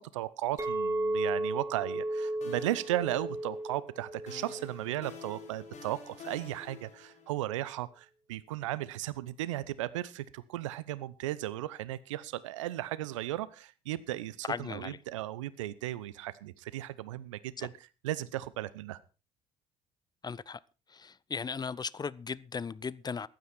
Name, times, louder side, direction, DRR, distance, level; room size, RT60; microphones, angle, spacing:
voice 1, 0.1-19.0, right 14 dB, 80° right, 0.8 m, -36 dB
Chink clink, 0.6-5.8, right 1 dB, 20° right, 3.7 m, -35 dB
sound 1, 1.8-2.1 2.4-3.8 4.3-7.4, left 6 dB, 45° left, 4.0 m, -50 dB
voice 2, 14.5-15.0 17.6-17.7 20.2-20.6 20.9-23.3, left 5 dB, 25° left, 0.6 m, -37 dB
15.0 x 11.5 x 4.3 m
hypercardioid pair, 55°, 16 cm